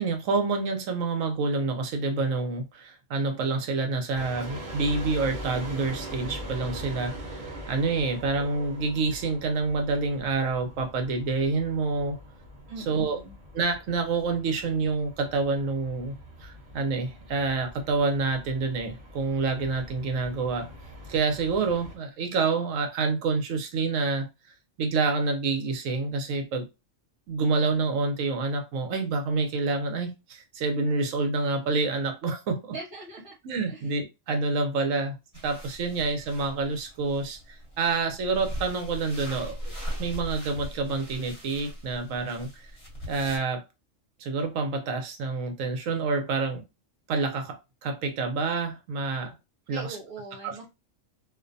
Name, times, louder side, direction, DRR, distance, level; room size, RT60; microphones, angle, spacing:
voice 1, 0.0-7.4 7.7-12.2 12.9-13.2 13.5-16.1 16.4-20.7 21.1-24.3 24.8-26.7 27.3-32.7 33.4-35.2 35.4-39.7 40.0-42.5 43.1-43.6 44.2-46.6 47.1-49.3 49.7-49.9 50.4-50.7, right 3 dB, 80° right, 1.0 m, -28 dB
sound 1, 4.1-22.0, equal, 40° right, 0.9 m, -42 dB
voice 2, 12.7-13.3 32.7-33.3 33.7-33.9 49.7-50.7, right 3 dB, 60° right, 1.2 m, -41 dB
sound 2, 35.3-43.4, equal, 30° left, 1.1 m, -40 dB
2.5 x 2.1 x 2.6 m
omnidirectional pair, 1.3 m